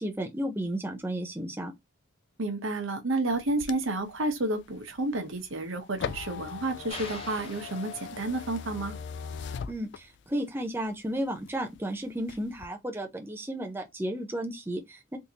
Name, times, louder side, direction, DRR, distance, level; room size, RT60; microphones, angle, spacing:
voice 1, 0.0-1.7 9.7-15.2, right 1 dB, 10° right, 0.6 m, -33 dB
voice 2, 2.4-8.9, right 2 dB, 70° right, 1.0 m, -30 dB
sound 1, 3.3-10.4 10.8-11.8 12.2-12.7, left 6 dB, 55° left, 0.3 m, -40 dB
sound 2, 6.9-8.6, left 3 dB, 25° left, 0.9 m, -44 dB
3.6 x 2.7 x 2.8 m
head